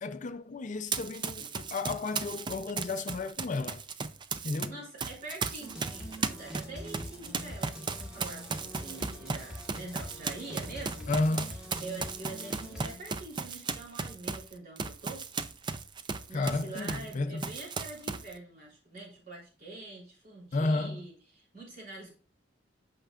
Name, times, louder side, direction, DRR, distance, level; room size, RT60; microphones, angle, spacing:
voice 1, 0.0-3.8 4.4-4.8 11.1-11.6 16.3-17.5 20.5-21.0, left 2 dB, 40° left, 0.5 m, -32 dB
Run, 0.9-4.7 5.0-17.1 17.4-18.3, right 4 dB, 25° right, 0.4 m, -36 dB
voice 2, 4.7-11.1 11.8-15.3 16.3-22.1, right 2 dB, 50° right, 3.5 m, -45 dB
sound 1, 5.6-12.9, equal, 5° right, 1.5 m, -44 dB
8.9 x 5.8 x 2.4 m
head